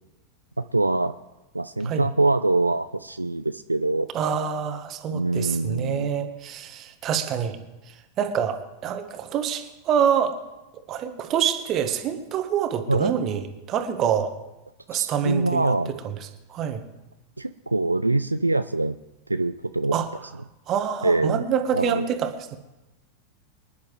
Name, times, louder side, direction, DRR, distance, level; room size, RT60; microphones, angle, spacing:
voice 1, 0.6-1.1 1.5-4.1 5.1-6.1 12.9-13.1 14.9-15.9 17.4-19.0 19.3-20.0 21.0-21.4 21.7-22.1, right 2 dB, 85° right, 11 dB, 0.4 m, -24 dB
voice 2, 4.1-7.6 8.2-10.4 10.9-13.4 13.7-14.3 14.9-16.1 16.5-16.8 19.9-20.1 20.7-22.6, right 8 dB, 35° right, 8 dB, 1.5 m, -26 dB
25.0 x 10.5 x 3.3 m, 1.0 s
figure-of-eight pair, 90°, 0 cm